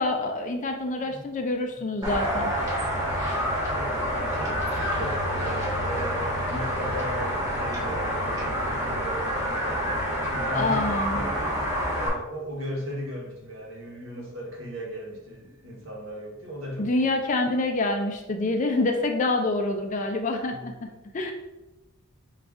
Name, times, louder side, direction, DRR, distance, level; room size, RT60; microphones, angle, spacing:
voice 1, 0.0-2.5 10.5-11.3 16.8-20.9 21.1-21.3, left 2 dB, 35° left, 4 dB, 0.4 m, -26 dB
sound 1, 2.0-12.1, equal, 15° right, 1.2 m, -28 dB
voice 2, 3.7-9.9 10.3-11.6 11.9-17.1 20.5-21.0, equal, 65° right, -2 dB, 1.1 m, -37 dB
5.1 x 2.4 x 3.5 m, 1.0 s
head